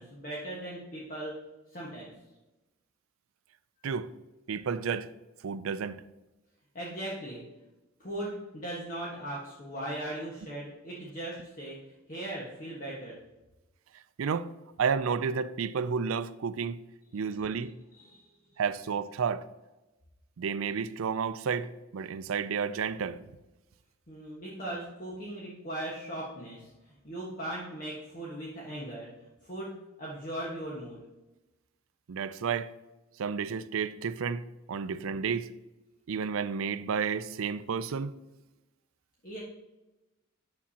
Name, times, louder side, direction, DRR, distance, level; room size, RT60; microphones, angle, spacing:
voice 1, 0.0-1.3 1.7-2.1 6.7-7.4 8.0-11.8 12.1-13.2 17.9-18.3 24.1-26.7 27.0-29.1 29.4-29.7 30.0-31.0 39.2-39.4, right 1 dB, 40° left, 1.4 m, -38 dB
voice 2, 4.5-5.1 5.4-6.0 14.2-14.5 14.8-16.8 17.1-17.7 18.6-19.4 20.4-23.2 32.1-32.7 33.2-35.5 36.1-38.1, right 6 dB, 70° right, 0.4 m, -31 dB
9.8 x 7.0 x 2.8 m
head